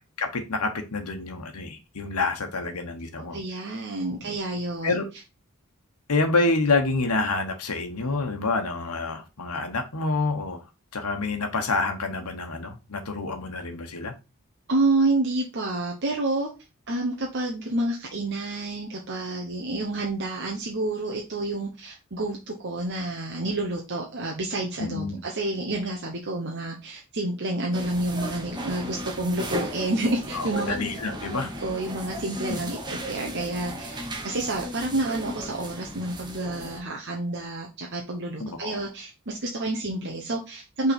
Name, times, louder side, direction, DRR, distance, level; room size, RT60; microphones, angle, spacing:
voice 1, 0.2-3.4 4.8-5.0 6.1-10.6 10.9-14.1 24.8-25.2 30.3-31.5 32.5-32.6 38.4-38.7, left 3 dB, 90° left, 4 dB, 1.1 m, -27 dB
voice 2, 3.3-5.0 14.7-16.5 16.9-30.7 31.3-40.9, right 2 dB, 50° right, 0 dB, 1.0 m, -29 dB
sound 1, 27.7-36.8, equal, 20° right, 1.2 m, -36 dB
5.6 x 3.9 x 4.4 m, 0.28 s
head